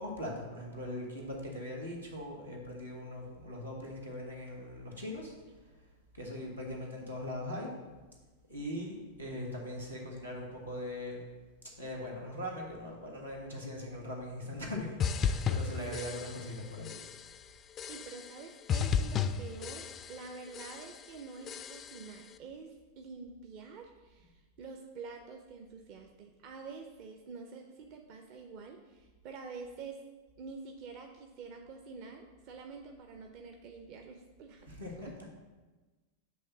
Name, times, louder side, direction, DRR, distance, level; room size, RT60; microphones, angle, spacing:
voice 1, 0.0-5.3 6.1-7.7 8.5-11.2 11.8-17.0 24.2-24.3 34.7-35.3, left 1 dB, 85° right, -2 dB, 1.5 m, -40 dB
sound 1, 15.0-16.6 16.8-17.4 17.8-18.4 18.7-20.3 20.5-21.1 21.5-22.1, left 7 dB, 30° left, 0.3 m, -34 dB
voice 2, 17.9-24.3 24.6-30.0 30.4-34.7 35.0-35.1, right 4 dB, 45° right, 3 dB, 0.6 m, -47 dB
7.9 x 3.2 x 6.3 m, 1.2 s
figure-of-eight pair, 90°, 0 cm